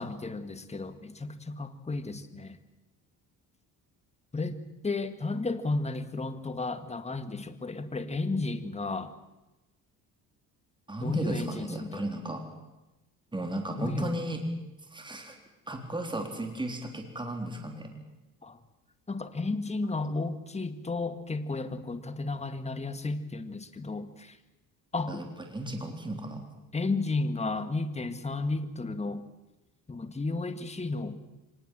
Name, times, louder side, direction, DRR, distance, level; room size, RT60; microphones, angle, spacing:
voice 1, 0.0-2.6 4.3-9.1 11.0-12.0 13.8-14.1 18.4-18.6 19.1-24.4 24.9-25.3 26.7-29.2 29.9-31.2, left 3 dB, 20° left, 10 dB, 1.8 m, -33 dB
voice 2, 10.9-12.4 13.3-14.4 14.9-15.4 15.7-17.9 25.1-25.2 25.5-26.4, right 1 dB, 15° right, 4 dB, 3.8 m, -34 dB
24.5 x 19.5 x 7.6 m, 1.0 s
cardioid pair, 105°, 36 cm